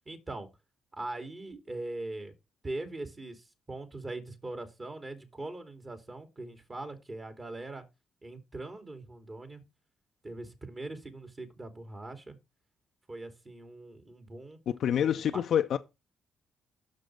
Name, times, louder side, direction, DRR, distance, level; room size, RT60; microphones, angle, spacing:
voice 1, 0.1-0.5 1.0-2.3 2.6-7.8 8.2-9.6 10.2-12.4 13.1-14.6 15.3-15.4, right 2 dB, 35° right, 2.8 m, -41 dB
voice 2, 14.7-15.8, left 9 dB, 65° left, 0.5 m, -27 dB
6.4 x 6.4 x 6.2 m
hypercardioid pair, 45°, 0 cm